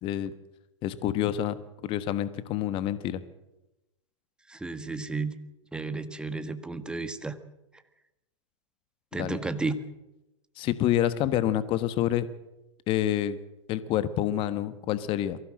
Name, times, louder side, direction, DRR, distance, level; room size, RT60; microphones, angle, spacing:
voice 1, 0.0-0.3 0.8-1.6 1.8-3.2 9.2-9.4 10.6-12.3 12.9-13.4 13.7-15.4, left 12 dB, 35° left, 13 dB, 1.3 m, -27 dB
voice 2, 4.5-5.4 5.7-7.3 9.1-9.8, right 3 dB, 5° right, 10 dB, 1.6 m, -32 dB
23.5 x 16.0 x 7.7 m, 0.95 s
hypercardioid pair, 115°, 16 cm